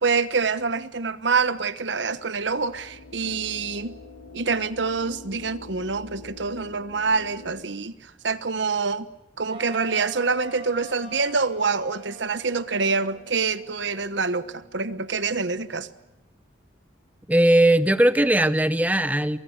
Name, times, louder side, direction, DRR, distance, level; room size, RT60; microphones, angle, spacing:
voice 1, 0.0-3.9 4.3-8.0 8.2-9.1 9.4-15.9, right 4 dB, 75° right, 1.2 m, -26 dB
sound 1, 2.2-7.6, left 3 dB, 80° left, 3.9 m, -45 dB
sound 2, 9.5-16.2, right 2 dB, 25° right, 7.2 m, -46 dB
voice 2, 17.3-19.4, right 1 dB, 10° right, 0.9 m, -19 dB
24.0 x 22.5 x 8.0 m
head